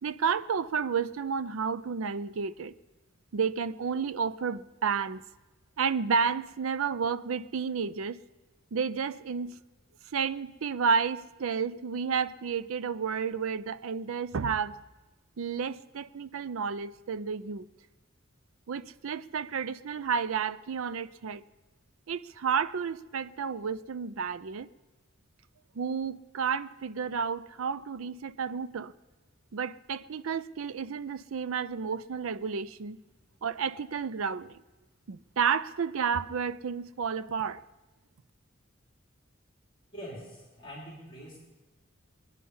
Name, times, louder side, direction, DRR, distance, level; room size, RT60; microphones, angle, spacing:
voice 1, 0.0-2.7 3.3-5.2 5.8-8.2 8.7-9.6 10.1-14.8 15.4-17.7 18.7-21.4 22.1-24.7 25.7-28.9 29.5-33.0 33.4-34.6 35.1-37.6, right 6 dB, 80° right, 0.5 m, -31 dB
voice 2, 39.9-41.4, equal, 25° left, 3.3 m, -44 dB
21.5 x 9.7 x 5.5 m
head